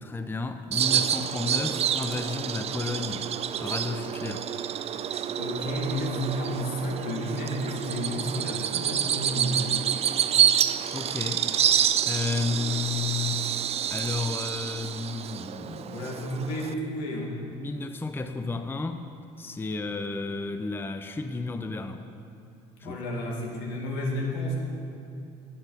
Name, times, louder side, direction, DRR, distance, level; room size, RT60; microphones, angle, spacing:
voice 1, 0.0-3.3 3.6-4.5 10.9-11.8 12.1-16.1 17.5-19.0 19.4-22.0 22.8-23.0, left 3 dB, 15° left, 8 dB, 0.5 m, -32 dB
Bird vocalization bird call bird song, 0.7-16.7, right 9 dB, 40° right, 0.4 m, -28 dB
voice 2, 5.3-9.8 15.9-17.4 22.8-24.5, equal, 80° left, -1 dB, 1.8 m, -31 dB
8.5 x 7.9 x 5.4 m, 2.6 s
supercardioid pair, 70°, 16 cm